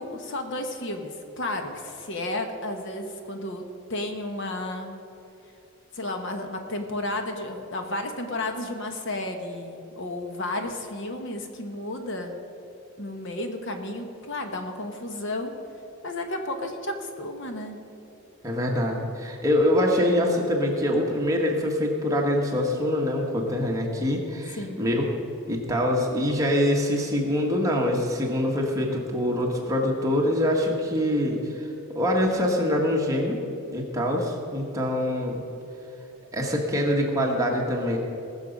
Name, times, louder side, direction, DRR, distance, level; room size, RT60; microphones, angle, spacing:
voice 1, 0.0-3.6 3.9-5.0 5.9-12.3 13.0-15.5 16.0-17.8 24.6-24.8, left 1 dB, 55° left, 5 dB, 1.1 m, -32 dB
voice 2, 18.4-25.1 25.5-31.7 31.9-33.4 33.7-35.4 36.3-38.0, left 1 dB, 15° right, -1 dB, 1.4 m, -24 dB
19.5 x 7.0 x 5.2 m, 2.9 s
head